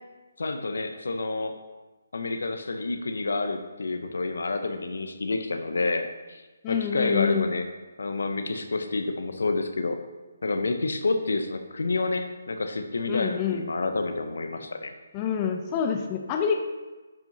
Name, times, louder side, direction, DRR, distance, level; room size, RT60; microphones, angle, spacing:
voice 1, 0.4-1.5 2.1-7.7 8.0-10.0 10.4-14.9, left 3 dB, 75° left, 7 dB, 0.7 m, -29 dB
voice 2, 6.6-7.5 13.1-13.6 15.1-16.6, left 7 dB, 25° left, 4 dB, 0.5 m, -27 dB
10.5 x 4.6 x 2.7 m, 1.2 s
figure-of-eight pair, 155°, 0 cm